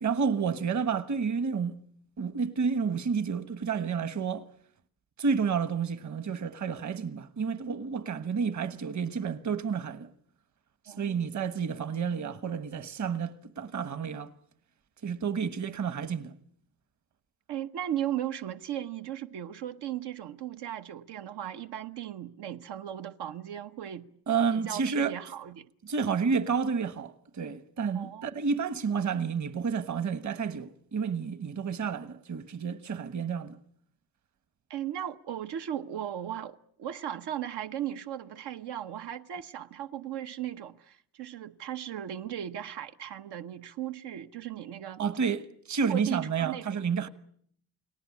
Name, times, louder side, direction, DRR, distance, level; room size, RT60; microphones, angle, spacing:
voice 1, 0.0-1.8 2.2-4.5 5.2-10.1 10.9-14.3 15.0-16.3 24.3-25.2 25.8-33.6 45.0-47.1, right 6 dB, 45° right, 1.3 m, -30 dB
voice 2, 10.9-11.3 17.5-24.1 24.5-25.7 27.9-28.3 34.7-45.0 45.8-46.8, right 11 dB, 90° right, 1.1 m, -37 dB
29.5 x 19.0 x 8.5 m
cardioid pair, 140°, 39 cm